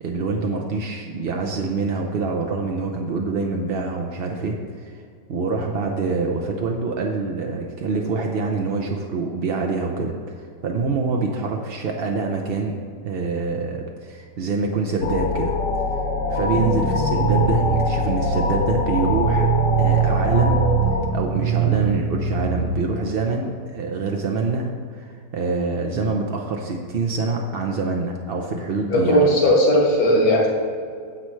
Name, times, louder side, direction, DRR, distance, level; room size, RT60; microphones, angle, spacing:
voice 1, 0.0-4.9 5.3-12.8 13.0-15.5 16.3-19.5 19.8-20.6 21.1-29.3, right 4 dB, 60° right, 1 dB, 0.6 m, -25 dB
sound 1, 15.0-21.0, left 4 dB, 55° left, 1.2 m, -24 dB
sound 2, 16.5-22.7, right 8 dB, 85° right, 1.4 m, -23 dB
voice 2, 28.9-30.5, equal, 75° left, -3 dB, 2.4 m, -17 dB
9.8 x 7.5 x 3.1 m, 2.2 s
omnidirectional pair, 1.7 m